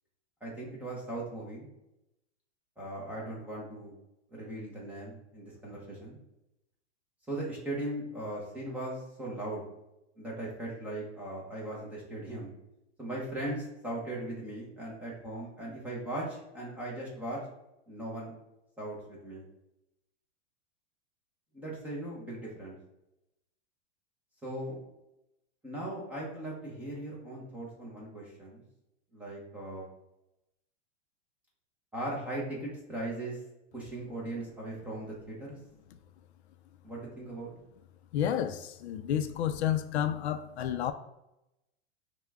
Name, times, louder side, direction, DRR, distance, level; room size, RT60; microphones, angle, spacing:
voice 1, 0.4-1.7 2.8-3.9 4.3-6.2 7.3-9.6 10.2-12.5 13.0-17.4 17.9-18.3 18.8-19.5 21.5-22.8 24.4-24.8 25.6-28.6 29.1-29.9 31.9-33.4 33.7-35.6 36.8-37.5, right 1 dB, 5° right, 0.6 m, -38 dB
voice 2, 38.1-40.9, left 10 dB, 65° left, 0.5 m, -30 dB
5.7 x 2.1 x 3.4 m
supercardioid pair, 165°, 36 cm